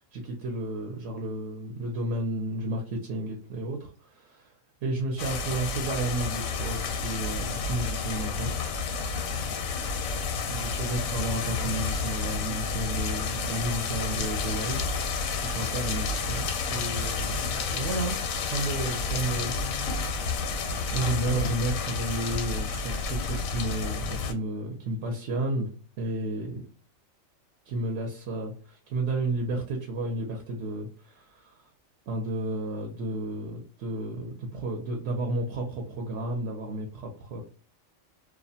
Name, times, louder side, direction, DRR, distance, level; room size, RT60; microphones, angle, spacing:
voice 1, 0.1-4.5 4.8-8.5 10.5-14.8 15.0-20.1 20.9-25.7 26.0-26.6 27.7-31.6 32.1-37.4, right 2 dB, 70° right, 1 dB, 0.8 m, -32 dB
sound 1, 5.2-24.3, left 4 dB, 85° left, 1.0 m, -30 dB
2.4 x 2.1 x 2.7 m, 0.40 s
omnidirectional pair, 1.4 m